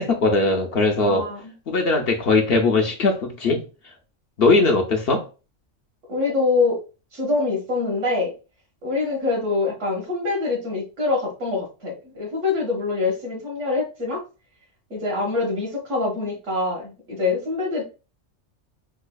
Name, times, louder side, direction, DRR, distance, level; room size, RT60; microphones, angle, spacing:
voice 1, 0.0-1.3 1.7-3.6 4.4-5.3, left 3 dB, 60° left, 0.7 m, -20 dB
voice 2, 1.0-1.5 6.1-6.8 7.1-8.3 8.8-14.2 14.9-17.8, left 3 dB, 75° right, 1.8 m, -25 dB
4.9 x 2.3 x 2.2 m
omnidirectional pair, 1.3 m